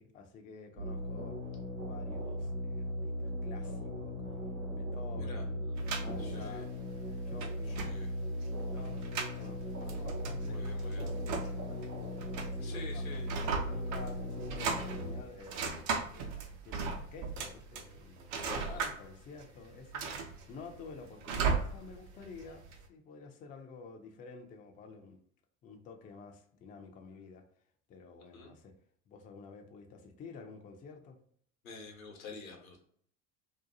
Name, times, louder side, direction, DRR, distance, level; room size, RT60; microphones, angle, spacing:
voice 1, 0.0-1.4 1.8-5.7 6.0-6.7 7.1-7.9 8.2-12.0 12.3-13.0 13.7-20.1 20.5-22.6 22.9-25.2 25.6-27.4 27.9-28.7 29.1-31.2, left 4 dB, 20° left, 4 dB, 0.3 m, -51 dB
sound 1, 0.8-15.2, equal, 90° right, 0.9 m, -38 dB
sound 2, 5.8-22.8, right 5 dB, 60° right, 0.6 m, -38 dB
voice 2, 6.2-6.6 7.6-8.1 10.5-11.0 12.6-13.3 18.4-18.8 28.3-28.5 31.6-32.8, left 4 dB, 80° left, 1 dB, 0.8 m, -47 dB
2.7 x 2.2 x 2.5 m, 0.63 s
hypercardioid pair, 75°, 40 cm